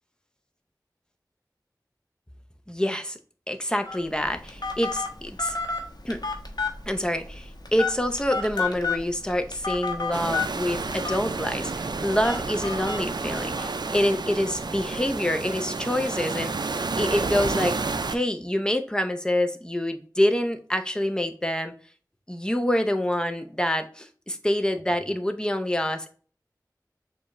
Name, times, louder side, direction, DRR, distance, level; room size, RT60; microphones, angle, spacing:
voice 1, 2.7-3.2 3.5-5.5 6.0-6.2 6.9-17.8 18.1-21.7 22.3-26.1, left 1 dB, 10° left, 7 dB, 0.7 m, -26 dB
Telephone, 3.9-13.7, left 4 dB, 75° left, 1.0 m, -32 dB
sound 1, 10.1-18.2, right 3 dB, 85° right, 0.4 m, -30 dB
6.8 x 2.4 x 3.0 m, 0.42 s
wide cardioid pair, 45°, 7 cm